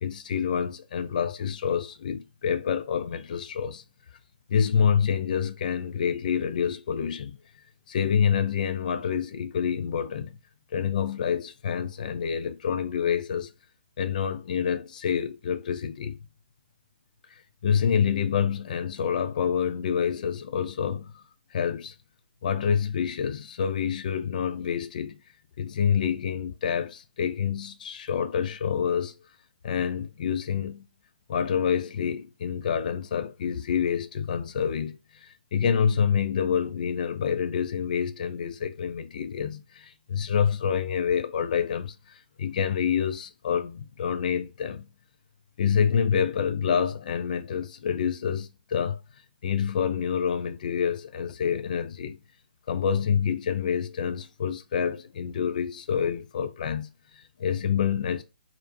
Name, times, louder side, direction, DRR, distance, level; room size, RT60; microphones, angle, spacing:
voice 1, 0.0-3.8 4.5-7.4 7.9-10.4 10.7-13.5 14.0-16.2 17.3-21.2 21.5-21.9 22.4-25.2 25.6-29.1 29.6-30.9 31.3-44.9 45.6-49.0 49.4-52.2 52.7-58.2, left 7 dB, 50° left, 0.3 m, -27 dB
2.4 x 2.1 x 2.5 m
figure-of-eight pair, 135°, 6 cm